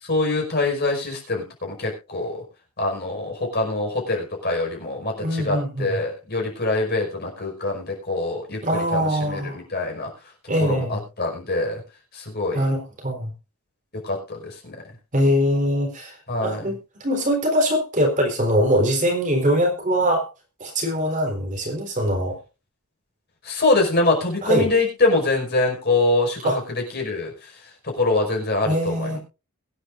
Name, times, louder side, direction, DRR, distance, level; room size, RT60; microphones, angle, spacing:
voice 1, 0.0-2.4 2.8-10.1 10.6-11.8 12.1-12.6 14.0-14.8 16.3-16.6 23.4-27.5 27.8-29.2, left 2 dB, 45° left, 2 dB, 5.4 m, -24 dB
voice 2, 5.2-6.0 8.6-9.6 10.5-11.0 12.5-13.3 15.1-16.2 16.4-20.3 20.6-22.4 24.4-24.7 26.4-26.6 28.6-29.2, equal, 35° right, 1 dB, 4.0 m, -22 dB
22.5 x 9.8 x 2.6 m, 0.30 s
head